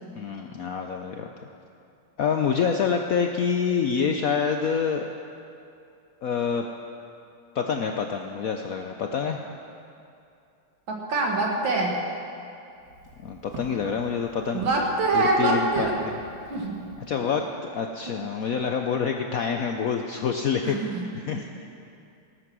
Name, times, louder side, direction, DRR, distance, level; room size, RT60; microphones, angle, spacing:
voice 1, 0.1-1.3 2.2-5.1 6.2-6.7 7.5-9.4 13.2-14.6 15.1-16.2 17.1-21.5, left 6 dB, 70° left, 4 dB, 0.8 m, -27 dB
voice 2, 10.9-11.9 14.5-15.9 16.5-16.8 17.2-17.3 20.6-21.6, right 3 dB, 75° right, -1 dB, 2.6 m, -25 dB
Walk footsteps, 12.7-17.2, right 1 dB, 60° right, 2.7 m, -42 dB
19.0 x 8.7 x 6.1 m, 2.6 s
omnidirectional pair, 2.1 m